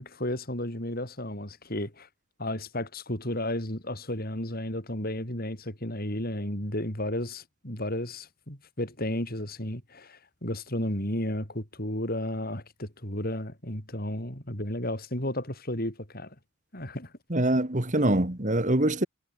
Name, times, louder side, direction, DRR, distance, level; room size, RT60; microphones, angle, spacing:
voice 1, 0.0-2.1 2.4-16.3 16.7-17.1, left 1 dB, 45° left, 6.6 m, -33 dB
voice 2, 17.3-19.1, right 1 dB, 35° right, 2.0 m, -24 dB
head